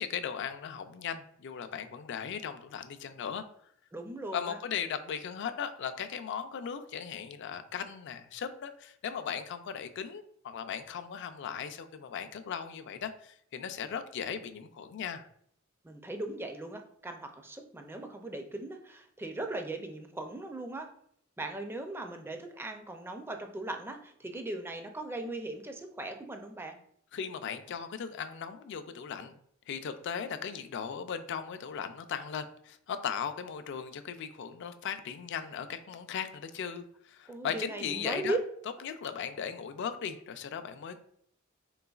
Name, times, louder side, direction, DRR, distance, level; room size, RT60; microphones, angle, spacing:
voice 1, 0.0-3.4 4.3-15.3 27.1-29.4 29.7-38.4 38.8-41.0, left 7 dB, 60° left, 9 dB, 0.4 m, -37 dB
voice 2, 3.9-4.6 15.8-20.9 21.4-26.8 37.3-38.4, right 2 dB, 10° right, 5 dB, 0.4 m, -38 dB
3.9 x 3.7 x 2.3 m, 0.66 s
head